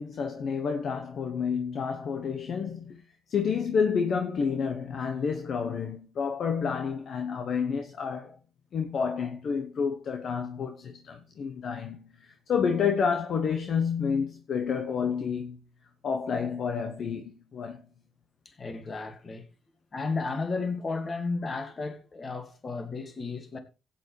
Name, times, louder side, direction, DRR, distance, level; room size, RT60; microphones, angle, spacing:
voice 1, 0.0-3.0 3.3-8.3 8.7-15.6 16.0-17.8, left 6 dB, 60° left, 1.0 m, -29 dB
voice 2, 18.6-19.5 19.9-23.6, left 4 dB, 40° left, 2.1 m, -33 dB
15.5 x 9.0 x 3.3 m
cardioid pair, 90°, 0 cm